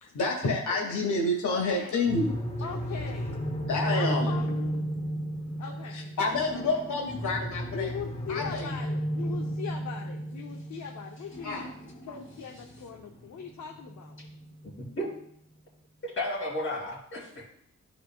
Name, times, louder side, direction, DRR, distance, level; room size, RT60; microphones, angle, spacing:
voice 1, 0.0-2.4 3.6-4.4 5.9-7.9 8.3-8.7 11.4-11.6, left 2 dB, 90° left, 0 dB, 1.5 m, -29 dB
voice 2, 0.7-1.0 1.5-2.1 2.6-3.4 3.8-4.8 5.6-6.2 6.5-6.8 7.7-11.7 12.1-14.2, left 7 dB, 70° left, 2 dB, 0.8 m, -40 dB
sound 1, 2.1-14.8, equal, 20° left, 0.9 m, -34 dB
voice 3, 14.8-15.1 16.0-17.5, left 1 dB, 45° left, -5 dB, 3.3 m, -33 dB
13.0 x 4.9 x 2.3 m, 0.69 s
wide cardioid pair, 145°, 29 cm